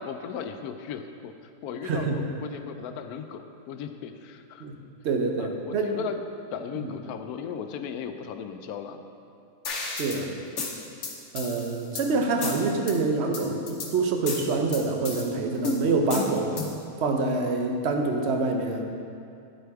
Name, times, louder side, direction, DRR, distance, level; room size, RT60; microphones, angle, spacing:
voice 1, 0.0-1.3 1.6-4.8 5.4-6.2 6.5-9.0 10.7-10.8, left 7 dB, 80° left, 7 dB, 1.1 m, -36 dB
voice 2, 1.8-2.2 4.6-4.8 5.0-5.9 6.8-6.9 9.9-10.3 11.3-16.7 17.0-18.8, right 3 dB, 55° right, 3 dB, 0.9 m, -26 dB
sound 1, 9.6-10.2 10.6-12.1 12.4-12.9 13.3-13.9 14.3-15.2 15.6-16.8, left 3 dB, 55° left, 1.3 m, -32 dB
10.0 x 7.7 x 3.5 m, 2.5 s
omnidirectional pair, 1.6 m